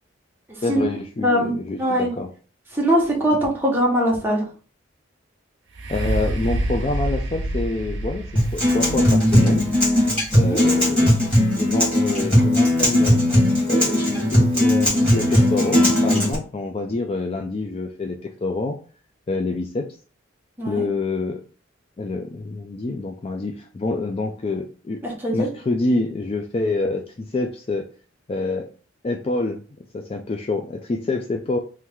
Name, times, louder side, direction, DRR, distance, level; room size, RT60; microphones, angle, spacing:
voice 1, 0.6-2.3 5.9-8.2 8.5-9.7 10.3-13.2 13.7-18.8 19.3-20.0 20.7-21.4 22.0-25.0 25.3-27.9 28.3-28.7 29.0-29.6 29.9-31.6, left 2 dB, 30° left, 4 dB, 0.3 m, -27 dB
voice 2, 1.2-2.1 2.7-4.5 10.3-10.6 20.6-20.8 25.0-25.5, equal, 10° right, -3 dB, 1.2 m, -21 dB
sound 1, 5.7-13.5 14.1-14.2, right 1 dB, 65° right, 0.8 m, -29 dB
Acoustic guitar, 8.4-16.3, left 1 dB, 5° left, 1.8 m, -18 dB
3.2 x 3.0 x 3.7 m, 0.38 s
head